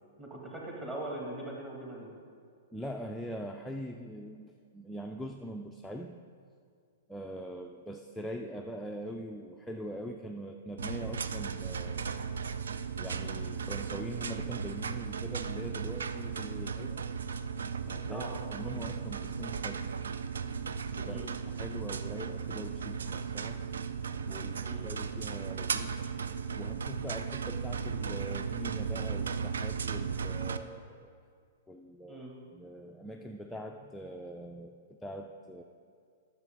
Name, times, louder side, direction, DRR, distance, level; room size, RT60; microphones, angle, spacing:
voice 1, 0.2-2.1 18.1-18.3 21.0-21.3 24.6-24.9 32.1-32.3, right 1 dB, 20° right, -3 dB, 2.1 m, -41 dB
voice 2, 2.7-6.2 7.1-12.4 13.0-17.0 17.9-18.2 18.5-20.0 21.0-23.6 24.3-26.0 26.5-31.1 31.7-32.2 32.5-35.6, equal, 5° left, 2 dB, 0.4 m, -42 dB
sound 1, 10.8-30.6, right 6 dB, 65° right, 0.4 m, -36 dB
12.0 x 6.7 x 3.8 m, 2.3 s
figure-of-eight pair, 105°, 0 cm